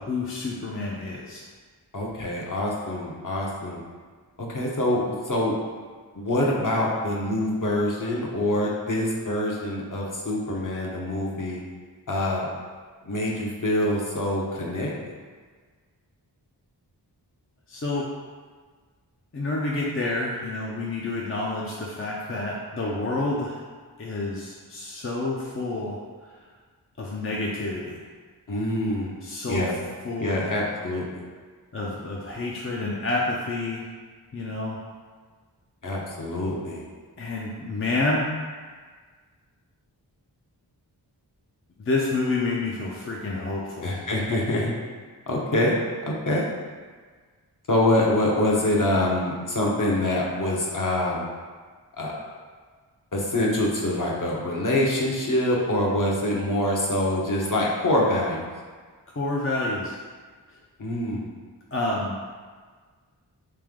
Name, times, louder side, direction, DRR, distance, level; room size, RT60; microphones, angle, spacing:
voice 1, 0.0-1.4 17.7-18.0 19.3-23.6 24.0-26.0 27.0-28.0 29.2-29.6 30.0-30.4 31.7-33.8 34.3-34.8 37.2-38.3 41.8-44.0 59.2-59.9 61.7-62.2, left 2 dB, 30° left, -4 dB, 0.6 m, -28 dB
voice 2, 1.9-3.8 4.4-5.5 6.1-11.6 12.1-12.5 13.0-14.9 28.5-29.1 29.5-29.7 30.2-31.2 35.8-36.8 43.8-44.7 45.3-45.8 46.0-46.5 47.7-51.3 52.0-52.1 53.1-58.5 60.8-61.2, left 1 dB, 50° left, -3 dB, 1.0 m, -25 dB
3.4 x 3.3 x 3.6 m, 1.5 s
cardioid pair, 45°, 42 cm